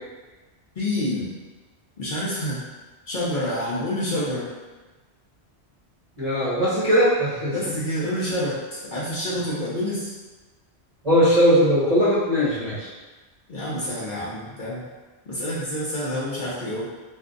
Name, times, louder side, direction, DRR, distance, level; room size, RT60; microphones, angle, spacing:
voice 1, 0.8-1.3 2.0-2.6 3.1-4.5 7.5-10.1 13.5-14.9 15.3-16.9, left 1 dB, 50° left, -8 dB, 0.8 m, -28 dB
voice 2, 6.2-7.5 11.0-12.9, equal, 35° right, -9 dB, 0.9 m, -19 dB
2.5 x 2.3 x 3.7 m, 1.2 s
omnidirectional pair, 1.2 m